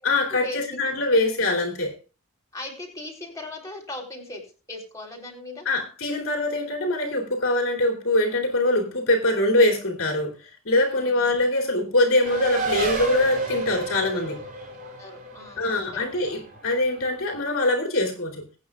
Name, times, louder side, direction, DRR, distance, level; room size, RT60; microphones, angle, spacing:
voice 1, 0.0-1.9 5.6-14.4 15.6-18.5, left 1 dB, 65° left, 2 dB, 2.9 m, -23 dB
voice 2, 2.5-4.4 4.7-5.7 11.0-11.3 15.0-15.8, left 2 dB, 15° left, -2 dB, 3.7 m, -38 dB
Race car auto racing, 12.2-17.2, right 2 dB, 45° right, 5.3 m, -31 dB
21.5 x 9.0 x 2.4 m, 0.33 s
head